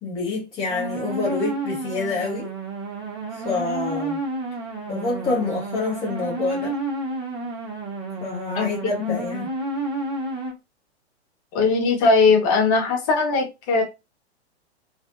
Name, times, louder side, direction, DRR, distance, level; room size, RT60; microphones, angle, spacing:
voice 1, 0.0-2.5 3.3-4.2 4.9-6.8 8.2-9.5, left 3 dB, 15° left, 0.7 m, -27 dB
sound 1, 0.7-10.5, right 2 dB, 30° right, 1.4 m, -30 dB
voice 2, 11.5-13.8, left 4 dB, 30° left, 1.1 m, -19 dB
3.2 x 2.7 x 2.4 m
figure-of-eight pair, 105°, 34 cm